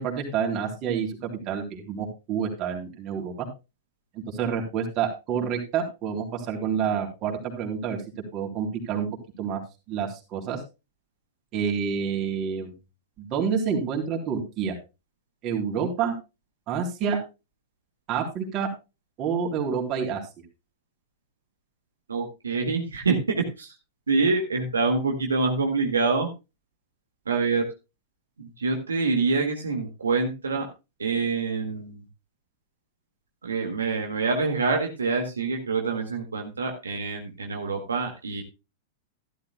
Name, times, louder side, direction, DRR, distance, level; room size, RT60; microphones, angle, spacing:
voice 1, 0.0-3.5 4.3-8.0 8.3-9.1 9.4-9.6 9.9-10.6 11.5-12.7 13.2-14.8 15.4-16.1 16.7-17.2 18.1-18.7 19.2-20.2, right 7 dB, 40° right, 2 dB, 3.7 m, -28 dB
voice 2, 22.1-23.7 24.1-26.3 27.3-27.6 28.4-30.7 31.0-32.0 33.4-38.4, right 4 dB, 90° right, 2 dB, 1.9 m, -26 dB
13.5 x 12.0 x 2.2 m, 0.26 s
hypercardioid pair, 105°, 0 cm